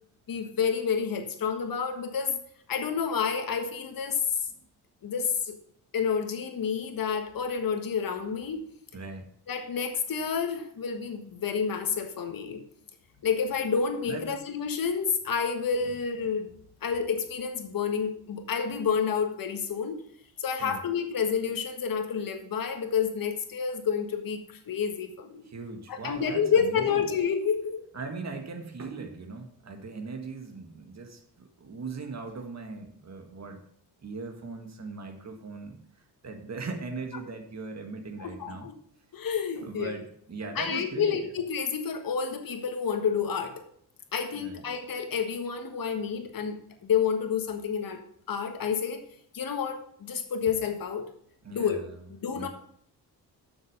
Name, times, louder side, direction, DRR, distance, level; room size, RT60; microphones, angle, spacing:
voice 1, 0.3-2.4 2.7-4.2 5.0-5.6 5.9-8.6 9.5-12.6 13.2-16.5 16.8-20.0 20.4-25.4 25.9-27.8 38.2-38.7 39.1-40.0 40.5-43.6 44.1-48.0 48.3-49.0 49.3-51.1 51.5-51.8 52.1-52.5, left 6 dB, 55° left, 6 dB, 1.5 m, -29 dB
voice 2, 8.9-9.3 14.1-14.3 20.6-20.8 25.4-27.0 27.9-33.6 34.0-35.8 36.2-38.7 39.5-41.3 44.3-44.6 51.4-52.0 52.3-52.5, right 4 dB, 40° right, 5 dB, 1.9 m, -39 dB
7.3 x 6.4 x 6.4 m, 0.66 s
cardioid pair, 85°, 41 cm